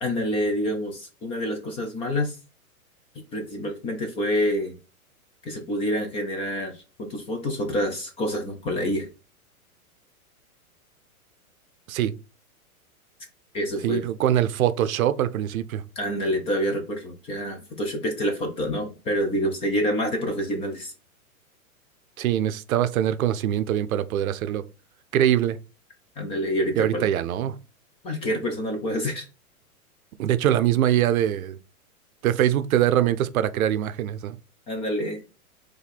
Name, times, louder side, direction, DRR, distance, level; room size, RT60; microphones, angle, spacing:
voice 1, 0.0-2.4 3.3-4.8 5.4-9.1 13.5-14.0 16.0-20.9 26.2-27.1 28.0-29.3 34.7-35.2, equal, 15° left, 0.4 m, -27 dB
voice 2, 13.8-15.8 22.2-24.6 25.1-25.6 26.8-27.5 30.2-31.6 32.2-34.4, right 11 dB, 75° right, 0.6 m, -23 dB
4.5 x 2.7 x 4.0 m
hypercardioid pair, 135°, 43 cm